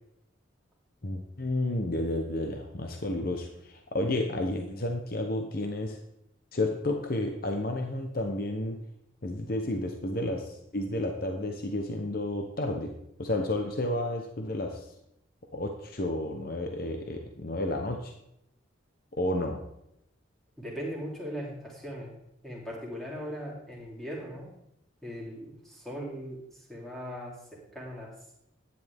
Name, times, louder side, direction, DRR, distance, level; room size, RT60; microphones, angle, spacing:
voice 1, 1.0-6.0 6.5-8.8 9.2-12.9 13.2-14.9 15.5-18.1 19.2-19.6, left 1 dB, 45° left, 3 dB, 0.9 m, -31 dB
voice 2, 20.6-22.1 22.4-24.5 25.0-26.4 26.7-27.3 27.7-28.3, equal, ahead, -5 dB, 2.9 m, -39 dB
11.5 x 9.7 x 3.5 m, 0.79 s
head